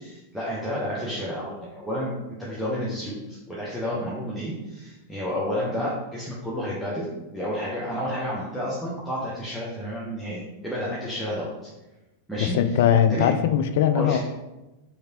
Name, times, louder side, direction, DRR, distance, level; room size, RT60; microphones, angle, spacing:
voice 1, 0.0-7.1 7.3-11.7 12.3-12.6 13.1-13.3 13.9-14.2, equal, ahead, -8 dB, 0.9 m, -30 dB
voice 2, 12.4-14.2, left 9 dB, 55° left, 8 dB, 0.3 m, -20 dB
4.8 x 3.2 x 2.8 m, 1.0 s
figure-of-eight pair, 90°, 0 cm